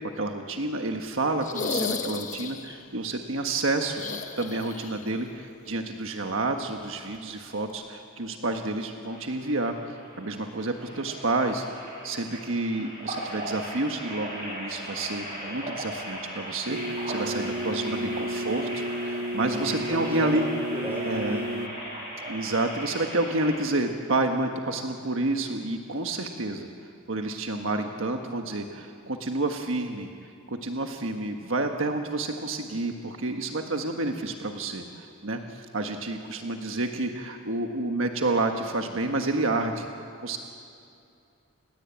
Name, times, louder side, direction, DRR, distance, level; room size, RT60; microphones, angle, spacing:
voice 1, 0.1-4.0 4.4-9.7 10.2-20.4 21.1-21.4 22.3-26.7 27.1-30.1 30.5-39.9 40.2-40.4, right 2 dB, 70° right, 4 dB, 1.5 m, -29 dB
sound 1, 1.4-2.8 3.9-5.1 5.4-5.5 7.1-7.2, left 4 dB, 35° left, 1.4 m, -33 dB
sound 2, 9.1-23.5, right 1 dB, 30° right, 7.5 m, -38 dB
sound 3, 16.7-21.7, equal, 85° right, 1.1 m, -32 dB
voice 2, 17.2-18.2 19.4-20.3 20.7-21.7, right 1 dB, 10° right, 0 dB, 5.8 m, -38 dB
30.0 x 17.5 x 8.7 m, 2.5 s
head